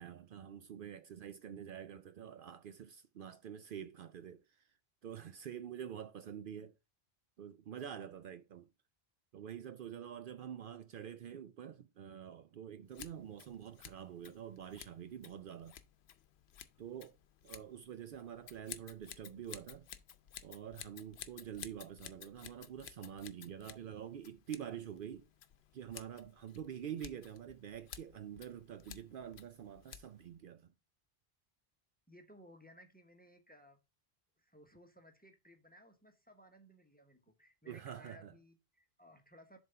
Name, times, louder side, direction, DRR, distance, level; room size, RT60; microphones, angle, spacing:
voice 1, 0.0-4.4 5.0-6.7 7.4-8.7 9.3-15.8 16.8-17.1 17.4-19.9 20.4-25.3 25.7-30.7 37.6-38.3, right 9 dB, 65° right, 0.7 m, -47 dB
Scissors, 12.9-30.4, left 9 dB, 90° left, 0.9 m, -54 dB
voice 2, 32.1-33.8 34.4-39.6, equal, 10° left, 0.9 m, -60 dB
7.3 x 3.5 x 5.4 m
omnidirectional pair, 1.0 m